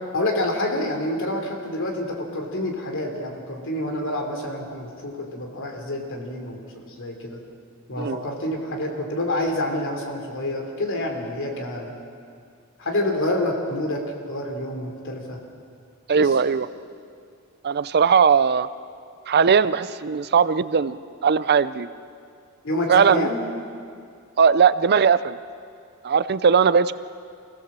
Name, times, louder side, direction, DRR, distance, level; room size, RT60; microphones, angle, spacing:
voice 1, 0.1-7.4 7.9-11.9 12.8-15.4 16.1-16.4 22.6-23.4, left 1 dB, 60° left, 3 dB, 3.2 m, -28 dB
voice 2, 16.1-16.7 17.6-18.7 19.3-21.9 22.9-23.3 24.4-25.4 26.0-26.9, right 6 dB, 50° right, 15 dB, 0.5 m, -19 dB
24.5 x 17.0 x 7.6 m, 2.3 s
head